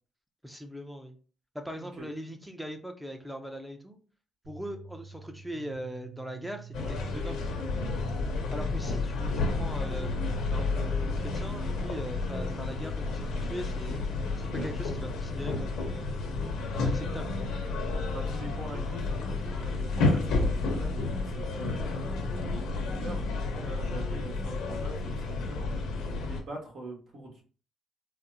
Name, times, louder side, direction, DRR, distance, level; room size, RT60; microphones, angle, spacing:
voice 1, 0.4-1.2 1.5-4.0 4.5-7.4 8.5-14.0 14.4-16.2 16.8-17.5, equal, 5° right, 5 dB, 0.6 m, -40 dB
sound 1, 4.4-11.3, right 3 dB, 80° right, 1.4 m, -47 dB
sound 2, 6.7-26.4, left 3 dB, 80° left, 0.8 m, -31 dB
voice 2, 8.2-8.5 18.1-21.9 22.3-25.8 26.2-27.4, right 2 dB, 60° right, -1 dB, 1.4 m, -43 dB
4.0 x 2.1 x 2.7 m, 0.39 s
cardioid pair, 90°, 0 cm